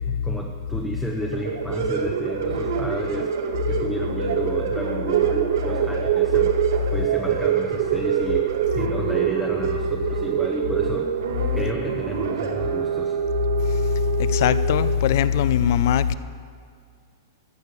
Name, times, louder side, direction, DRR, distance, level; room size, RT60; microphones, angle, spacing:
voice 1, 0.0-3.3 3.7-6.5 6.9-11.1 11.5-13.2, equal, ahead, 0.8 m, -32 dB
sound 1, 1.2-14.9, right 6 dB, 70° right, 1.6 m, -27 dB
sound 2, 4.3-10.9, right 15 dB, 50° right, 0.4 m, -25 dB
voice 2, 14.3-16.1, left 9 dB, 55° left, 0.5 m, -20 dB
15.0 x 6.7 x 8.3 m
hypercardioid pair, 160°, 2 cm